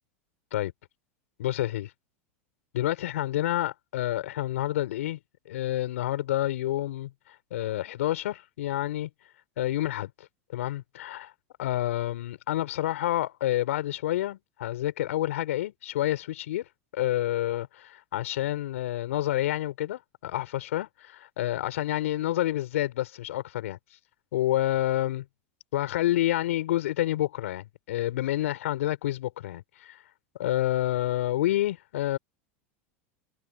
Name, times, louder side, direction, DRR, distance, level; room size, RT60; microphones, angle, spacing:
voice 1, 1.4-1.9 2.7-5.2 5.5-7.1 7.5-9.1 9.6-10.3 10.5-11.3 11.6-16.6 16.9-23.8 24.3-25.2 25.7-30.0 30.4-32.2, left 14 dB, 80° left, 5.5 m, -28 dB
hypercardioid pair, 105°, 7 cm